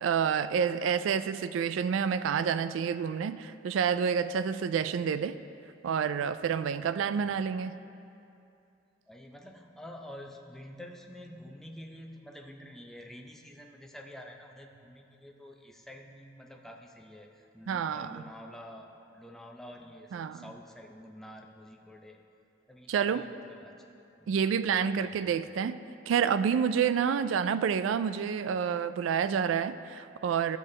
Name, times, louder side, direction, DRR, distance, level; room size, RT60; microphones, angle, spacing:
voice 1, 0.0-5.4 5.8-7.8 17.7-18.2 20.1-20.4 22.9-23.2 24.3-25.8 26.1-30.6, right 7 dB, 90° right, 13 dB, 0.3 m, -28 dB
voice 2, 7.0-7.4 9.1-22.2 22.7-23.7 24.2-24.3 25.0-25.3, equal, ahead, 1 dB, 0.5 m, -48 dB
13.5 x 6.6 x 3.2 m, 2.7 s
head